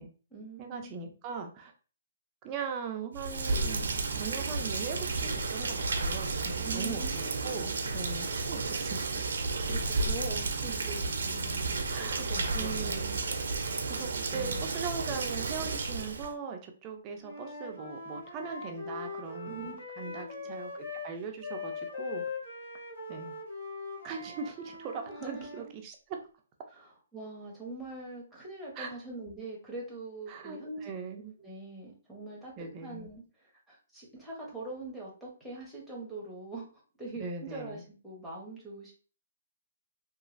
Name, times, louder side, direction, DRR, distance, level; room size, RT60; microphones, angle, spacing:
voice 1, 0.0-1.0 6.6-7.7 9.7-11.6 12.0-13.1 14.3-14.8 19.5-19.8 20.0-20.5 25.0-25.6 26.7-30.8 31.2-36.7 37.0-38.9, right 2 dB, ahead, -7 dB, 0.8 m, -43 dB
voice 2, 0.6-1.7 2.4-9.0 11.9-12.2 12.5-13.2 13.9-22.2 23.1-23.4 24.0-26.2 28.8-28.9 30.3-31.4 32.6-33.1 37.2-37.9, right 5 dB, 20° right, 3 dB, 0.4 m, -40 dB
Rain, 3.1-16.3, right 3 dB, 80° right, 0.5 m, -32 dB
Wind instrument woodwind instrument, 17.2-21.1 21.4-25.7, left 4 dB, 60° left, 1.3 m, -41 dB
3.0 x 2.3 x 2.4 m, 0.37 s
hypercardioid pair, 165°, 0 cm